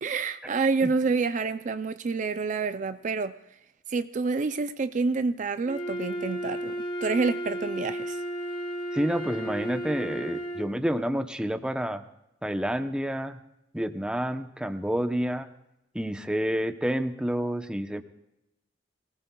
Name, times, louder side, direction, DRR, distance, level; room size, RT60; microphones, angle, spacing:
voice 1, 0.0-3.4 3.9-6.8 7.0-8.2, right 4 dB, 45° right, 0.4 m, -28 dB
Wind instrument woodwind instrument, 5.6-10.8, right 1 dB, 30° left, 1.3 m, -33 dB
voice 2, 8.9-12.0 12.4-13.4 13.7-15.5 15.9-18.0, equal, 5° right, 0.7 m, -29 dB
24.5 x 18.0 x 2.3 m
head